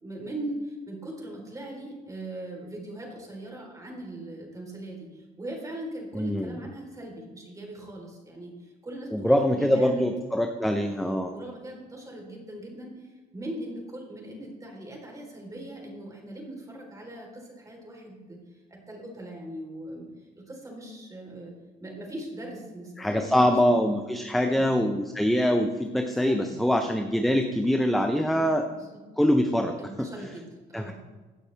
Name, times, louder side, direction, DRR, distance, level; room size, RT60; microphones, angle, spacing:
voice 1, 0.0-10.1 10.9-21.5 21.8-23.8 24.3-24.7 26.2-26.7 28.3-28.5 28.8-29.0 29.8-30.9, right 1 dB, 20° right, 0 dB, 4.0 m, -40 dB
voice 2, 6.1-6.6 9.1-11.3 23.0-28.7 29.2-30.1 30.7-30.9, equal, ahead, 5 dB, 0.8 m, -24 dB
16.5 x 9.1 x 3.5 m, 1.3 s
cardioid pair, 110°, 17 cm